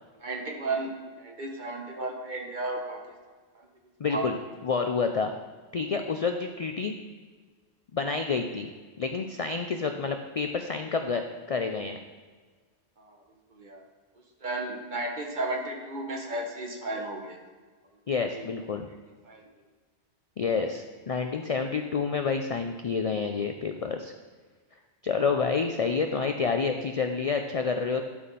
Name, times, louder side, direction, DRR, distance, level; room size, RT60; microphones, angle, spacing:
voice 1, 0.2-3.0 3.5-3.7 4.1-4.3 13.0-13.2 13.5-13.8 14.4-17.4 18.3-18.4 19.2-19.5, right 2 dB, 45° right, 2 dB, 1.2 m, -34 dB
voice 2, 4.0-4.4 4.6-5.3 5.7-6.9 7.9-8.7 9.0-12.0 18.1-18.9 20.4-24.1 25.0-28.1, left 5 dB, 55° left, 6 dB, 0.4 m, -28 dB
11.5 x 4.2 x 5.4 m, 1.4 s
omnidirectional pair, 1.1 m